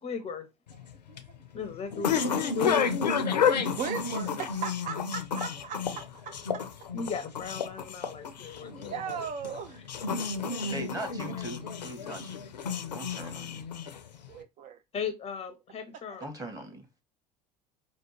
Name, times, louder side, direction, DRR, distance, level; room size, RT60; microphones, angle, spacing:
voice 1, 0.0-0.5 1.5-3.0 6.9-9.2 9.7-9.8 14.9-16.3, left 5 dB, 30° left, 0.6 m, -36 dB
sound 1, 0.7-14.3, left 6 dB, 85° left, 0.5 m, -31 dB
voice 2, 3.6-6.6 8.7-9.8 10.2-10.3 14.3-14.8, right 7 dB, 40° right, 0.4 m, -38 dB
voice 3, 10.7-12.4 12.9-13.7 16.2-16.8, right 1 dB, 15° right, 1.6 m, -40 dB
5.0 x 2.1 x 3.0 m
figure-of-eight pair, 70°, 21 cm